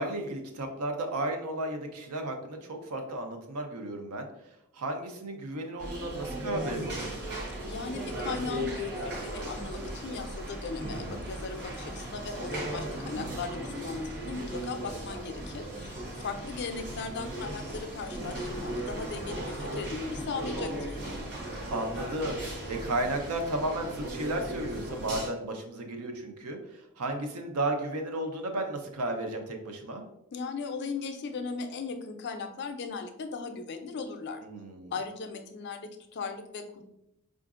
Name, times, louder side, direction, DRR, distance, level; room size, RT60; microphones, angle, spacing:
voice 1, 0.0-4.3 4.7-7.1 13.0-13.5 21.7-30.0 34.4-34.9, right 1 dB, 75° right, 4 dB, 0.6 m, -34 dB
sound 1, 5.8-25.3, right 1 dB, 50° right, 1.0 m, -37 dB
voice 2, 7.7-21.0 30.3-34.4 34.9-36.8, left 4 dB, 50° left, 6 dB, 0.4 m, -38 dB
4.7 x 2.5 x 2.4 m, 0.84 s
head